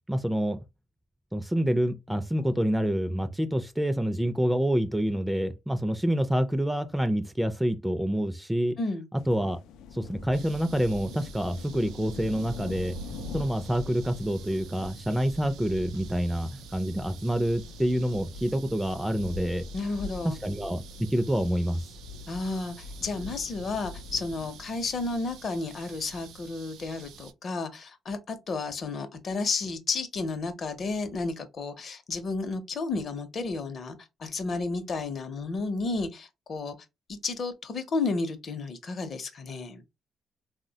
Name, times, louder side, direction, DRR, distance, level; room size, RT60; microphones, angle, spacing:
voice 1, 0.1-0.6 1.3-8.8 9.3-9.6 9.9-13.0 13.3-19.6 20.2-21.8, equal, 5° right, 0.4 m, -27 dB
voice 2, 8.8-9.1 19.7-20.4 22.3-36.8 37.1-39.8, left 3 dB, 50° left, 0.6 m, -32 dB
sound 1, 9.2-26.3, left 5 dB, 90° left, 0.3 m, -44 dB
sound 2, 10.3-27.3, right 7 dB, 85° right, 0.3 m, -48 dB
3.2 x 2.1 x 2.7 m
cardioid pair, 90°, 0 cm